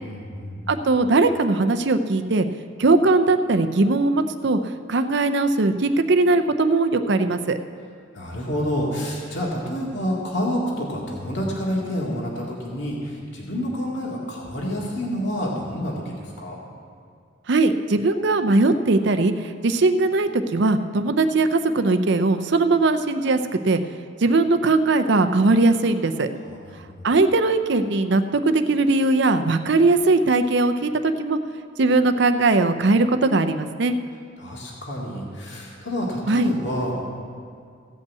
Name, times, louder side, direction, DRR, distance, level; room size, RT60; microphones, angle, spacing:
voice 1, 0.0-0.8 8.1-16.6 26.4-27.1 34.4-36.9, equal, 65° left, -3 dB, 2.2 m, -28 dB
voice 2, 0.7-2.5 2.8-4.6 4.9-7.6 17.5-19.3 19.6-23.4 23.6-23.8 24.2-26.3 27.0-31.4 31.8-33.9 36.3-36.5, right 3 dB, 60° right, 9 dB, 0.6 m, -19 dB
16.0 x 5.5 x 8.2 m, 2.2 s
head